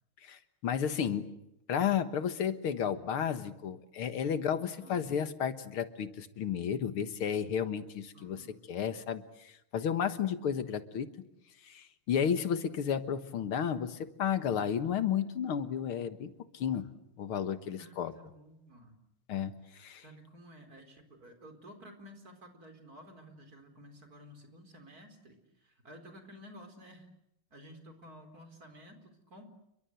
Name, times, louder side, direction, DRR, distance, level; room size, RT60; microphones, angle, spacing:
voice 1, 0.2-1.3 1.7-11.1 11.6-16.8 17.2-18.1 19.3-20.0, left 8 dB, 85° left, 11 dB, 2.4 m, -32 dB
voice 2, 4.8-5.1 8.1-8.7 17.8-19.0 20.0-27.1 27.5-29.5, equal, 45° right, 6 dB, 4.9 m, -53 dB
30.0 x 23.5 x 8.0 m, 0.80 s
omnidirectional pair, 2.3 m